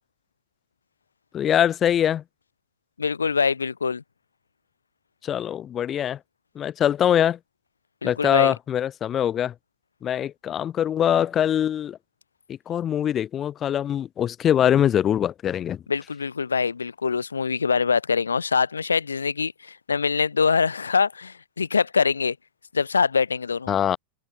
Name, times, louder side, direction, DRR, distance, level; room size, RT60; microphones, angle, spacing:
voice 1, 1.3-2.2 5.2-6.2 6.5-7.4 8.0-9.5 10.0-12.0 12.5-15.8 23.7-24.0, left 10 dB, 25° left, 1.1 m, -23 dB
voice 2, 3.0-4.0 8.0-8.5 15.9-22.4 22.7-23.7, left 5 dB, 75° left, 0.8 m, -24 dB
open air
figure-of-eight pair, 90°, 0 cm